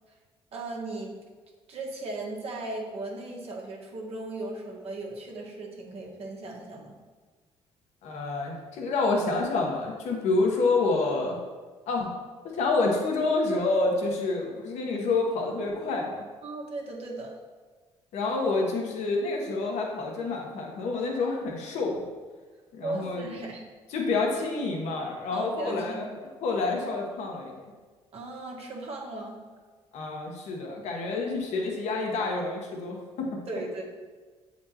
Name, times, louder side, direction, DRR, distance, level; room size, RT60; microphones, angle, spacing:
voice 1, 0.5-1.2 1.7-6.9 16.4-17.4 22.8-23.6 25.3-26.1 26.7-26.8 28.1-29.4 33.5-33.8, right 2 dB, 60° right, -1 dB, 1.4 m, -37 dB
voice 2, 8.0-11.4 11.9-12.1 12.4-16.2 18.1-21.9 22.7-23.2 23.9-26.1 26.4-27.7 29.9-33.4, left 3 dB, 75° left, 0 dB, 1.1 m, -28 dB
7.4 x 4.3 x 2.9 m, 1.4 s
supercardioid pair, 65°, 12 cm